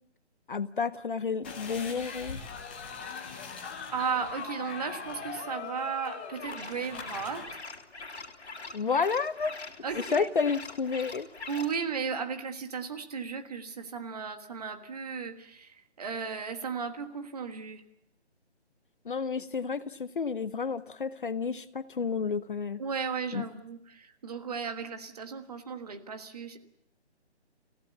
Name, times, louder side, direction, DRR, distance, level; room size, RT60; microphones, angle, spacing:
voice 1, 0.5-2.4 8.7-9.5 9.9-11.3 19.0-22.8 23.3-23.4, left 5 dB, 50° left, 14 dB, 0.8 m, -30 dB
sound 1, 1.4-7.4, left 5 dB, 10° left, 0.9 m, -40 dB
voice 2, 3.2-3.6 3.9-7.6 9.8-10.3 11.5-17.8 22.8-26.6, right 6 dB, 35° right, 8 dB, 1.5 m, -35 dB
sound 2, 6.4-11.8, left 3 dB, 70° left, 2.8 m, -43 dB
27.5 x 16.0 x 7.0 m, 0.76 s
hypercardioid pair, 165°, 33 cm